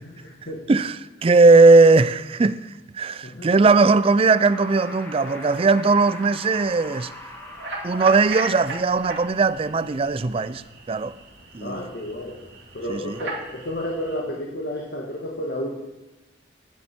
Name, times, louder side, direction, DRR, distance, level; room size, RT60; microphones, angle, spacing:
voice 1, 0.0-0.6 3.2-3.5 5.3-5.4 11.6-12.4 12.7-15.8, equal, 65° left, 1.5 m, -31 dB
voice 2, 0.7-2.7 2.9-7.1 7.8-11.1 11.5-11.9 12.9-13.2, right 3 dB, 35° right, 0.4 m, -18 dB
sound 1, 3.7-8.7, left 1 dB, 10° left, 1.4 m, -42 dB
sound 2, 6.4-14.2, right 2 dB, 85° right, 2.1 m, -37 dB
16.5 x 7.3 x 4.4 m
head